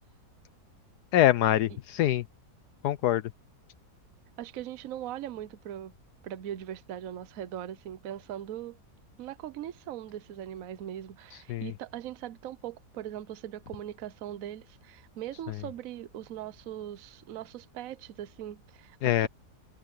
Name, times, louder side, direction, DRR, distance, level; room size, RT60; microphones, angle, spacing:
voice 1, 1.1-2.2 2.8-3.2 11.5-11.7 19.0-19.3, left 13 dB, 80° left, 1.2 m, -24 dB
voice 2, 4.4-5.9 6.2-8.8 9.2-19.3, right 11 dB, 65° right, 1.1 m, -40 dB
omnidirectional pair, 1.7 m